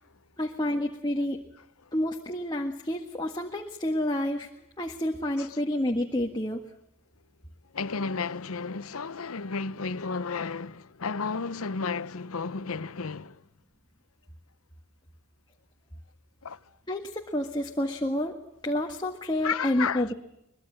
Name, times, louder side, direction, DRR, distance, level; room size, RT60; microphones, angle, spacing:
voice 1, 0.4-1.4 1.9-4.5 4.8-6.6 16.9-18.4 18.6-20.1, left 1 dB, 20° left, 1.7 m, -29 dB
voice 2, 7.7-13.4 16.4-16.6 19.4-20.1, left 5 dB, 75° left, 0.8 m, -32 dB
23.5 x 22.0 x 7.5 m
head